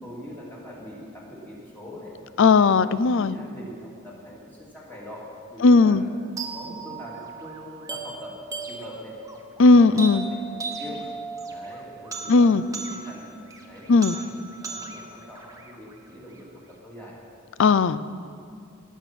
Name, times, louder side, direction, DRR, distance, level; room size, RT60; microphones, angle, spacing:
voice 1, 0.0-2.1 2.5-2.9 3.2-6.0 6.5-8.4 8.7-9.2 9.7-11.0 11.5-13.3 13.7-17.2, equal, 10° left, -5 dB, 2.9 m, -43 dB
voice 2, 2.4-3.4 5.6-6.0 9.6-10.2 12.3-12.6 13.9-14.2 17.6-18.0, left 4 dB, 65° left, 16 dB, 0.4 m, -16 dB
sound 1, 6.4-16.4, right 4 dB, 15° right, 1.2 m, -38 dB
20.0 x 7.3 x 6.0 m, 2.3 s
head